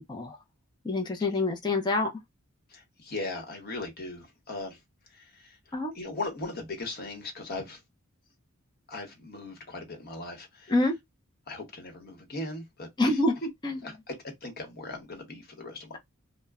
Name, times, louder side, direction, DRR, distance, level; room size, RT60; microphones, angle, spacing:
voice 1, 0.8-2.1 5.7-5.9 10.7-10.9 13.0-13.4 13.6-13.8, left 2 dB, 20° left, 0.5 m, -26 dB
voice 2, 2.7-4.8 5.1-7.8 8.9-10.7 11.5-13.2 13.8-16.0, left 2 dB, 45° left, 1.0 m, -39 dB
2.1 x 2.1 x 3.5 m
head